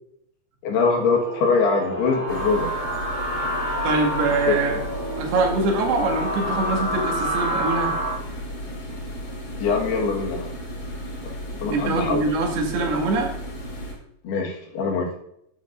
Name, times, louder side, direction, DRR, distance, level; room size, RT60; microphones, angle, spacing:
voice 1, 0.6-2.7 4.5-4.6 9.6-10.5 11.2-11.3 11.6-12.2 14.2-15.1, left 4 dB, 90° left, 1 dB, 3.8 m, -23 dB
sound 1, 0.9-8.1, equal, 40° left, 5.3 m, -28 dB
sound 2, 2.3-13.9, equal, 70° left, 5.8 m, -34 dB
voice 2, 3.8-4.8 5.2-7.9 11.7-13.3, right 3 dB, 80° right, 0 dB, 4.0 m, -23 dB
13.5 x 11.0 x 2.6 m, 0.74 s
omnidirectional pair, 4.5 m